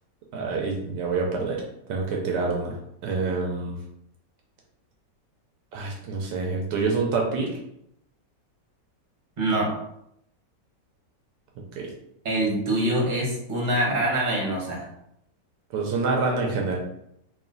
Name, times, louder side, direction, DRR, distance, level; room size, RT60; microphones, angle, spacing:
voice 1, 0.3-1.6 1.9-3.8 5.7-7.6 11.6-11.9 15.7-16.8, right 4 dB, 75° right, 0 dB, 1.3 m, -27 dB
voice 2, 9.4-9.7 12.2-14.8, right 1 dB, 30° right, -3 dB, 1.2 m, -24 dB
3.1 x 3.0 x 3.8 m, 0.76 s
omnidirectional pair, 1.9 m